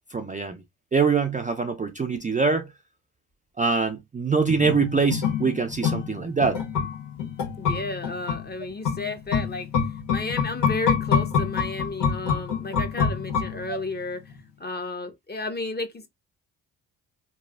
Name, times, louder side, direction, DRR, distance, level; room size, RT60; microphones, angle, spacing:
voice 1, 0.1-0.6 0.9-2.7 3.6-6.6, right 5 dB, 20° right, 0.4 m, -24 dB
sound 1, 4.4-14.0 14.3-14.4, left 6 dB, 90° left, 1.2 m, -27 dB
voice 2, 7.6-9.7 10.1-14.2 14.6-16.1, left 2 dB, 25° left, 0.8 m, -32 dB
3.2 x 2.3 x 2.3 m
hypercardioid pair, 45°, 42 cm